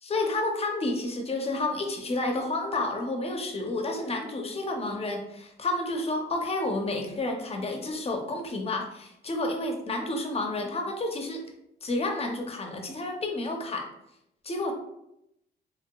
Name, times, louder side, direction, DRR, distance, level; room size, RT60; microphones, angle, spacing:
voice 1, 0.0-11.4 11.8-13.9 14.4-14.7, left 2 dB, 30° left, 3 dB, 0.6 m, -30 dB
3.0 x 2.8 x 2.3 m, 0.83 s
cardioid pair, 90°, 20 cm